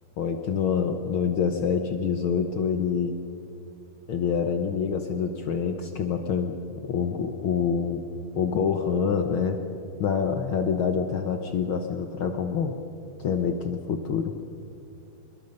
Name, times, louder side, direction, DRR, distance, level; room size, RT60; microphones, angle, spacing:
voice 1, 0.2-3.2 4.1-8.0 8.3-9.6 10.0-12.7 13.2-14.3, left 6 dB, 65° left, 6 dB, 1.3 m, -26 dB
26.5 x 21.5 x 5.4 m, 2.7 s
omnidirectional pair, 3.4 m